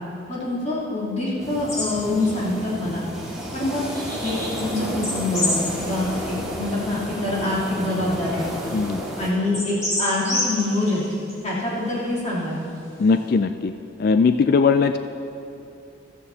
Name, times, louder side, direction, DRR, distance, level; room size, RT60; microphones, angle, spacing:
voice 1, 0.3-3.0 3.5-3.8 4.2-8.4 9.2-11.1 11.4-12.7, left 2 dB, 35° left, -8 dB, 3.1 m, -25 dB
sound 1, 1.4-9.3, equal, 5° right, 1.9 m, -32 dB
sound 2, 1.7-1.9 2.2-2.3 3.3-4.7 5.0-6.2 6.7-6.8 7.5-7.6 7.9-8.0 9.5-11.3, left 1 dB, 15° left, 2.5 m, -28 dB
voice 2, 8.7-9.0 13.0-13.7 14.0-15.0, left 5 dB, 50° left, 9 dB, 0.3 m, -19 dB
15.5 x 14.0 x 2.8 m, 2.8 s
head